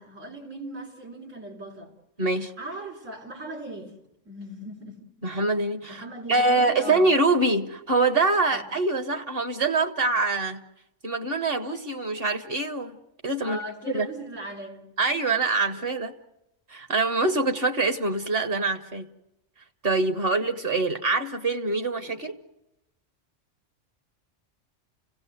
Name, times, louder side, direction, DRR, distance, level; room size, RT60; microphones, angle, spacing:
voice 1, 0.0-1.9 2.6-3.9 4.2-5.0 5.9-7.1 8.5-8.6 13.4-14.9 22.0-22.1, right 1 dB, 85° right, 4.0 m, -39 dB
voice 2, 2.2-2.5 5.2-6.0 6.3-10.6 11.0-13.0 13.2-13.6 13.9-14.1 15.0-16.1 16.7-19.1 19.8-22.4, right 3 dB, 50° right, 1.6 m, -24 dB
29.5 x 17.5 x 7.9 m
omnidirectional pair, 1.3 m